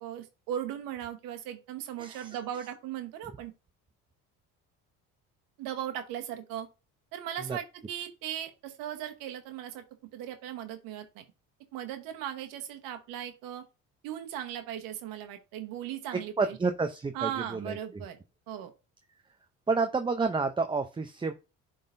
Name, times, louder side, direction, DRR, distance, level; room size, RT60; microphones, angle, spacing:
voice 1, 0.0-3.5 5.6-6.7 7.1-9.8 10.1-11.2 11.7-13.6 14.0-16.6 17.1-18.2 18.5-18.7, right 10 dB, 80° right, 6 dB, 1.2 m, -38 dB
voice 2, 2.0-2.4 7.4-7.6 16.4-17.8 19.7-21.3, right 4 dB, 15° right, 7 dB, 0.6 m, -29 dB
10.5 x 3.8 x 2.6 m, 0.29 s
cardioid pair, 100°, 34 cm